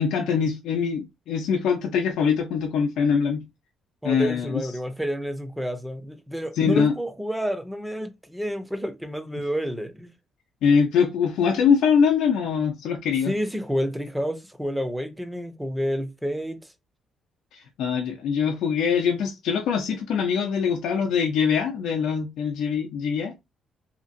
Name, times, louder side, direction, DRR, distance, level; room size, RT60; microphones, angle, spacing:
voice 1, 0.0-3.4 4.0-4.6 6.6-6.9 10.6-13.3 17.5-23.5, left 6 dB, 80° left, 0.5 m, -23 dB
voice 2, 4.0-10.1 13.2-16.7, equal, 5° right, 0.6 m, -29 dB
2.8 x 2.5 x 2.5 m
cardioid pair, 90°, 0 cm